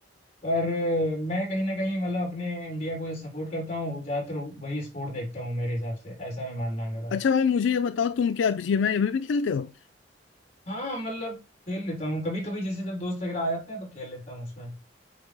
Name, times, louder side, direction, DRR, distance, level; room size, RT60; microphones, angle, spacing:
voice 1, 0.4-7.1 10.6-11.3 11.7-14.8, equal, 35° left, 3.3 m, -31 dB
voice 2, 7.1-9.7, left 6 dB, 85° left, 0.4 m, -24 dB
8.2 x 2.8 x 4.7 m
head